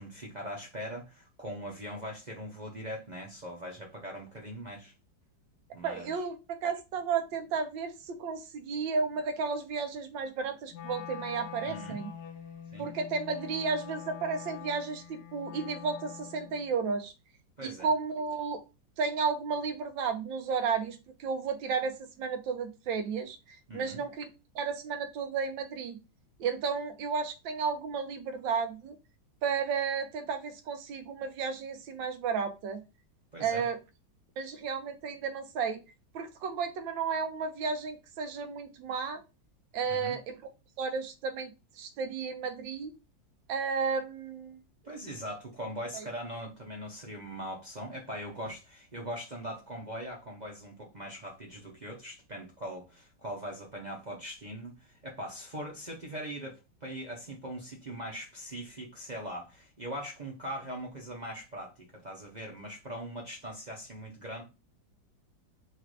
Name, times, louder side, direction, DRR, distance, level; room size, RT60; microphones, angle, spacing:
voice 1, 0.0-4.9 5.7-6.2 11.6-12.0 12.7-12.9 17.6-17.9 23.7-24.0 33.3-33.7 39.9-40.2 44.8-64.4, equal, 40° right, 0.6 m, -41 dB
voice 2, 5.8-6.4 6.6-12.1 12.8-17.1 17.6-18.6 19.0-24.3 24.5-26.0 26.4-29.0 29.4-32.8 33.4-33.8 34.4-35.8 36.1-39.2 39.7-40.4 40.8-41.5 41.8-42.9 43.5-44.6 45.9-46.0, right 5 dB, 90° right, 1.5 m, -33 dB
Wind instrument woodwind instrument, 10.7-16.7, left 9 dB, 65° left, 1.2 m, -44 dB
4.6 x 2.5 x 4.6 m
omnidirectional pair, 2.0 m